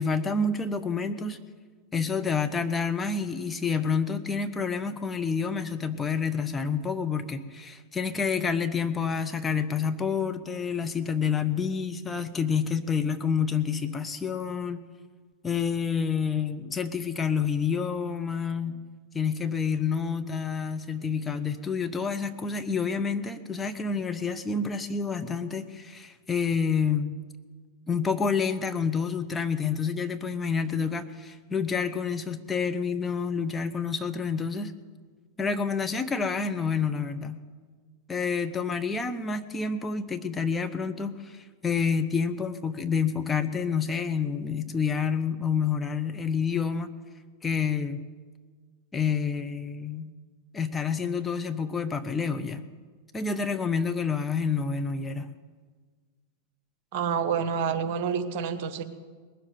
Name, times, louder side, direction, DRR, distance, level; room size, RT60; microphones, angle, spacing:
voice 1, 0.0-1.4 1.9-14.8 15.4-18.8 19.1-27.1 27.9-34.7 35.4-37.4 38.1-46.9 47.4-48.1 48.9-50.1 50.5-52.7 53.1-55.3, left 5 dB, 15° left, 6 dB, 0.8 m, -28 dB
voice 2, 56.9-58.8, right 7 dB, 50° right, 8 dB, 1.1 m, -28 dB
19.5 x 7.5 x 9.3 m, 1.5 s
figure-of-eight pair, 90°, 0 cm